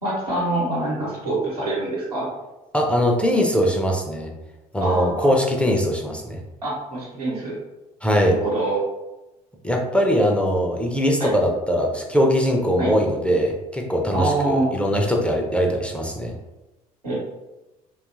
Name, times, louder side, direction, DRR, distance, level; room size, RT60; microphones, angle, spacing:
voice 1, 0.0-2.3 4.8-5.3 6.6-7.6 8.3-8.8 11.2-11.3 12.8-12.9 14.1-14.7 17.0-17.1, right 2 dB, 85° right, -7 dB, 0.9 m, -25 dB
voice 2, 2.7-4.3 4.7-6.4 8.0-8.3 9.6-16.3, equal, 5° left, 0 dB, 0.4 m, -21 dB
2.6 x 2.3 x 2.5 m, 1.0 s
figure-of-eight pair, 55°, 19 cm